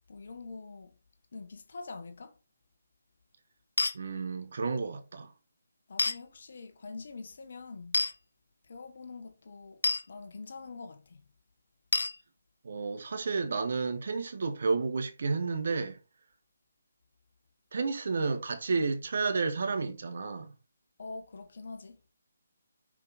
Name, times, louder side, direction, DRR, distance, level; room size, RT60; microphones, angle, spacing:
voice 1, 0.1-0.9 1.3-2.4 5.9-8.0 8.7-9.8 10.1-11.2 21.0-22.0, left 3 dB, 60° left, 1.4 m, -44 dB
sound 1, 3.8-4.0 6.0-6.2 7.9-8.1 9.8-10.0 11.9-12.1, left 3 dB, 75° left, 0.9 m, -27 dB
voice 2, 3.9-5.3 12.6-16.0 17.7-20.5, right 4 dB, 60° right, 1.4 m, -31 dB
5.6 x 5.1 x 4.1 m
figure-of-eight pair, 155°, 0 cm